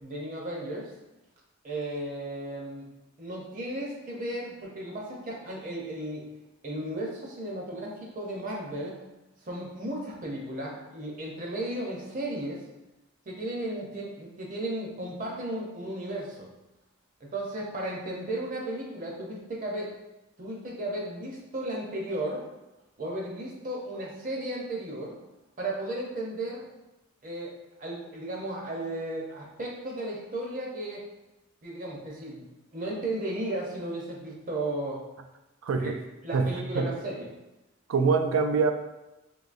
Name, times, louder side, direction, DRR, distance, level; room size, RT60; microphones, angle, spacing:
voice 1, 0.0-0.9 1.6-2.9 3.2-6.3 6.6-9.0 9.4-12.6 13.3-16.5 17.2-19.9 20.4-22.4 23.0-25.2 25.6-26.7 27.2-27.5 27.8-31.0 31.6-32.5 32.7-35.0 35.8-35.9 36.2-37.3, right 1 dB, 40° right, -2 dB, 0.6 m, -34 dB
voice 2, 35.6-36.0 36.3-36.9 37.9-38.7, right 5 dB, 90° right, 6 dB, 0.3 m, -24 dB
3.8 x 2.6 x 2.5 m, 0.99 s
head